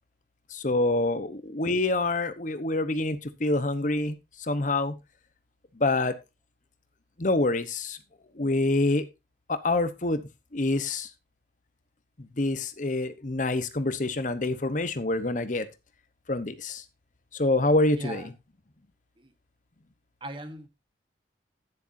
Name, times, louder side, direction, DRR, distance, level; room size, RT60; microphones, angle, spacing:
voice 1, 0.5-5.0 5.8-6.2 7.2-8.0 8.4-9.0 9.5-10.2 10.5-11.1 12.2-15.7 16.3-16.8 17.3-18.2, left 2 dB, 45° left, 1.0 m, -26 dB
voice 2, 17.9-18.3 19.2-19.3 20.2-20.7, right 1 dB, 30° right, 1.3 m, -39 dB
11.0 x 9.9 x 2.7 m
head